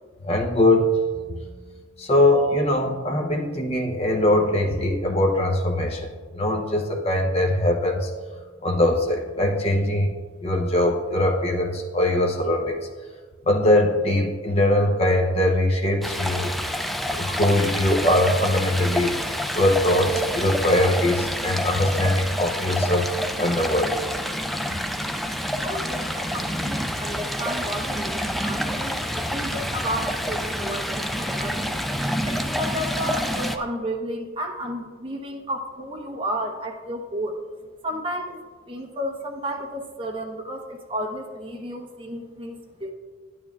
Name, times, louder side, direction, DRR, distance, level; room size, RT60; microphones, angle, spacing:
voice 1, 0.2-0.9 2.0-6.1 6.3-8.1 8.6-10.1 10.4-12.8 13.5-16.5 17.1-19.1 19.5-23.1 23.4-23.9, left 1 dB, 30° left, 2 dB, 0.8 m, -21 dB
Stream, 16.0-33.6, equal, ahead, 0.3 m, -28 dB
voice 2, 25.6-31.7 32.2-37.3 37.8-38.4 38.7-42.9, equal, 25° right, 0 dB, 1.0 m, -32 dB
11.5 x 9.1 x 2.4 m, 1.5 s
head